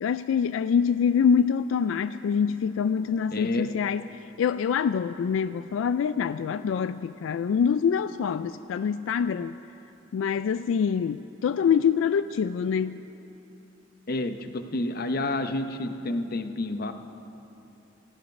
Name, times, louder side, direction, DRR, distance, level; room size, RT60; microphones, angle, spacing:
voice 1, 0.0-9.5 10.1-13.0, left 7 dB, 90° left, 13 dB, 0.3 m, -25 dB
voice 2, 3.3-3.7 14.1-16.9, left 2 dB, 50° left, 8 dB, 0.7 m, -29 dB
16.5 x 14.0 x 5.3 m, 2.9 s
head